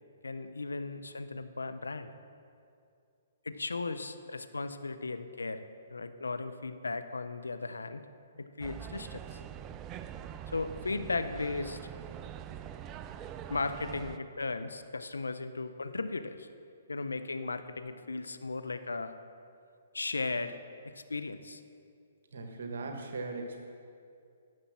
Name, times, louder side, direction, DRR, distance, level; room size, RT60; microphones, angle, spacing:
voice 1, 0.2-2.1 3.4-5.6 5.9-8.0 8.4-9.4 10.5-11.8 13.5-16.5 16.9-19.1 19.9-20.6 20.8-21.6, left 3 dB, 90° left, 10 dB, 0.6 m, -36 dB
sound 1, 8.6-14.2, right 9 dB, 25° right, 0.4 m, -44 dB
voice 2, 22.3-23.7, right 3 dB, 70° right, 4 dB, 1.3 m, -39 dB
11.0 x 6.8 x 7.4 m, 2.4 s
hypercardioid pair, 135°, 0 cm